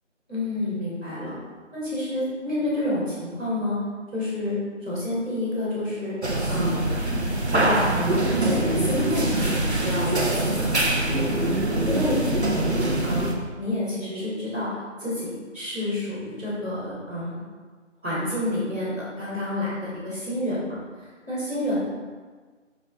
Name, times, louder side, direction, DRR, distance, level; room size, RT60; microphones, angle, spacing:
voice 1, 0.3-1.3 1.7-3.8 4.1-4.5 4.8-6.1 6.5-6.8 7.5-11.4 11.8-12.2 12.4-12.7 13.0-14.7 15.0-17.4 18.0-20.8 21.3-21.8, left 1 dB, 5° left, -24 dB, 1.6 m, -29 dB
sound 1, 6.2-13.3, right 1 dB, 60° right, 1.1 m, -24 dB
6.4 x 6.3 x 4.0 m, 1.5 s
figure-of-eight pair, 170°, 38 cm